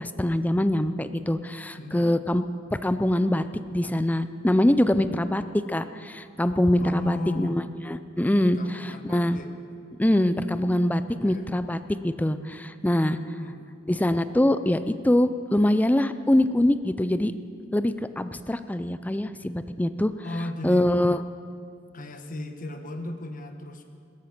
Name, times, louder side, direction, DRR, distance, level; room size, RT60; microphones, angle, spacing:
voice 1, 0.0-2.4 2.8-3.4 3.7-5.4 5.7-9.4 10.0-11.8 12.0-13.2 13.9-17.3 17.7-20.1 20.6-21.2, left 1 dB, 10° left, 11 dB, 0.4 m, -24 dB
voice 2, 1.8-2.2 5.0-5.2 6.8-7.6 8.4-9.5 11.0-11.5 13.3-13.7 20.2-20.9 21.9-23.8, left 1 dB, 45° left, 6 dB, 1.2 m, -36 dB
16.5 x 13.0 x 5.9 m, 2.3 s
head